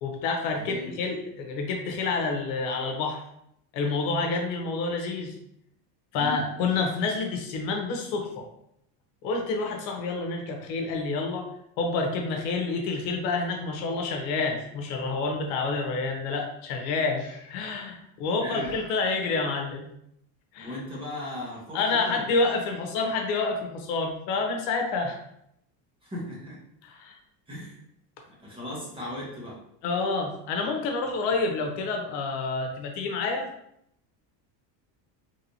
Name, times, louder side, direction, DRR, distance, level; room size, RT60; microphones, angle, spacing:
voice 1, 0.0-3.2 3.7-5.3 6.1-8.5 9.2-11.5 11.8-17.2 17.5-19.9 20.5-20.8 21.7-25.2 26.8-27.2 29.8-33.5, left 3 dB, 80° left, 3 dB, 0.9 m, -28 dB
voice 2, 0.6-1.0 6.1-6.4 18.4-18.8 20.6-22.2 26.0-26.6 27.5-27.7 28.3-29.6, left 1 dB, 10° right, -5 dB, 0.9 m, -37 dB
Breathing, 17.2-17.8 18.5-19.1, left 3 dB, 40° left, 0.7 m, -46 dB
3.3 x 2.9 x 2.7 m, 0.74 s
cardioid pair, 145°, 49 cm